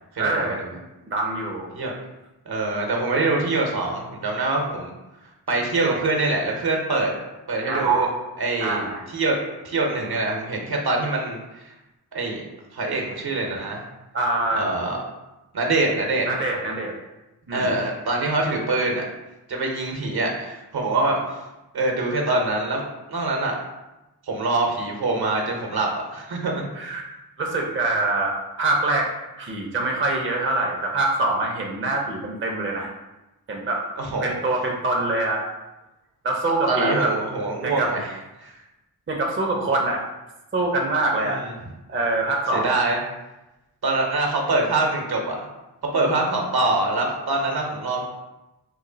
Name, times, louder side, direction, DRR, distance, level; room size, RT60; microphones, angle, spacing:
voice 1, 0.2-0.8 1.1-1.7 7.7-7.9 8.6-9.0 14.1-14.7 16.2-16.9 17.5-17.7 26.7-27.0 27.4-32.9 33.5-33.9 34.2-35.4 36.2-37.1 37.6-37.9 39.1-40.0 40.5-41.4 41.9-42.7, right 2 dB, 30° right, 0 dB, 0.6 m, -24 dB
voice 2, 2.5-4.9 5.5-7.1 7.5-8.1 8.4-8.8 9.1-9.4 9.6-11.7 12.1-12.4 12.7-13.8 14.5-15.0 15.5-16.3 17.5-19.0 19.5-21.2 21.7-22.8 23.1-23.6 24.2-26.9 34.0-34.3 36.7-38.1 38.4-38.6 41.2-41.5 42.5-43.0 43.8-45.5 45.9-48.1, right 2 dB, 60° right, 1 dB, 0.8 m, -24 dB
3.0 x 2.1 x 3.8 m, 1.0 s
cardioid pair, 45°, 42 cm